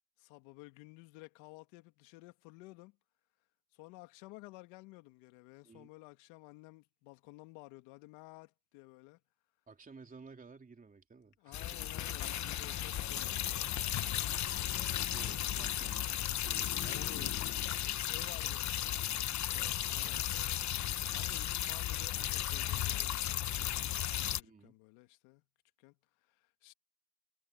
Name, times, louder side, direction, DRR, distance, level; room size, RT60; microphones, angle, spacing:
voice 1, 0.2-3.0 3.7-9.2 11.4-14.2 16.9-17.4 17.9-19.0 19.5-20.4 20.8-25.4 25.8-25.9 26.3-26.7, left 23 dB, 75° left, 2.6 m, -54 dB
voice 2, 9.7-11.6 11.9-12.1 15.1-17.7 24.4-24.7, right 4 dB, 15° right, 3.3 m, -55 dB
sound 1, 11.5-24.4, left 12 dB, 35° left, 1.2 m, -35 dB
supercardioid pair, 120°, 48 cm